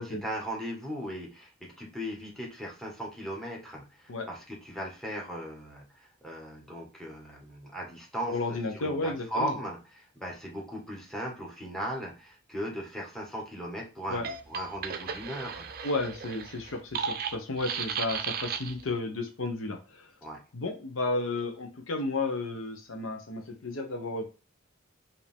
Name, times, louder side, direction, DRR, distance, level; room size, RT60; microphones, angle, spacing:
voice 1, 0.0-15.7 20.2-20.4, equal, ahead, -1 dB, 1.4 m, -38 dB
voice 2, 8.3-9.6 14.1-14.3 15.8-20.1 20.5-24.3, left 2 dB, 70° left, 5 dB, 0.8 m, -33 dB
sound 1, 14.1-18.9, right 6 dB, 50° right, 0.5 m, -35 dB
5.1 x 2.8 x 3.5 m, 0.32 s
head